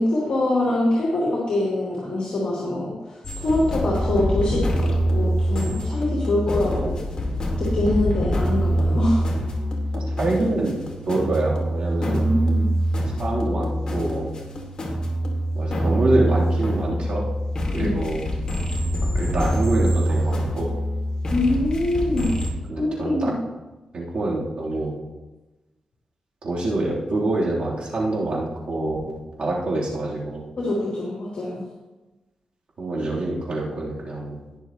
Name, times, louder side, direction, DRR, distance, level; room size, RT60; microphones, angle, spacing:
voice 1, 0.0-6.9 7.6-9.2 12.0-12.7 17.8-18.0 21.3-22.3 22.8-23.3 30.6-31.6, left 1 dB, 55° left, -6 dB, 3.2 m, -24 dB
sound 1, 3.2-22.5, equal, 40° left, 2.5 m, -25 dB
voice 2, 9.9-10.8 11.1-12.3 13.2-14.3 15.5-17.3 17.7-18.2 19.0-20.7 22.7-23.3 23.9-25.0 26.4-30.4 32.8-34.4, right 2 dB, 60° right, -5 dB, 3.5 m, -26 dB
19.5 x 6.9 x 3.1 m, 1.1 s
cardioid pair, 95°, 2 cm